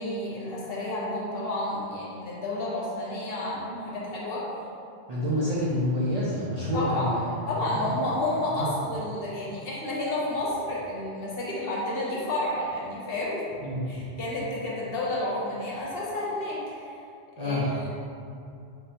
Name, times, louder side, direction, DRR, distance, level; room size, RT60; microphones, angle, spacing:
voice 1, 0.0-4.4 6.7-7.2 7.5-17.0 17.4-17.9, left 1 dB, 65° left, -5 dB, 0.9 m, -31 dB
voice 2, 5.1-7.9 8.5-8.7 13.6-14.1 17.4-17.7, left 1 dB, 50° right, -8 dB, 0.5 m, -28 dB
3.4 x 3.2 x 2.8 m, 2.5 s
omnidirectional pair, 1.1 m